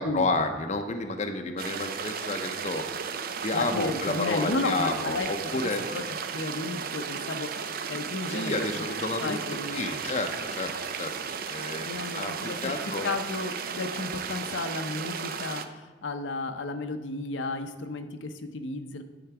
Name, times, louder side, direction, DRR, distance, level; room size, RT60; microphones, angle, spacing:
voice 1, 0.0-2.9 3.4-5.8 8.3-12.3 12.6-13.1, left 2 dB, 40° left, 6 dB, 0.6 m, -31 dB
sound 1, 1.6-15.7, right 6 dB, 50° right, 0.5 m, -35 dB
voice 2, 3.5-6.0 6.3-8.5 9.2-9.8 11.9-12.7 13.0-19.0, left 2 dB, 75° left, 7 dB, 0.6 m, -33 dB
10.0 x 3.9 x 5.8 m, 1.3 s
head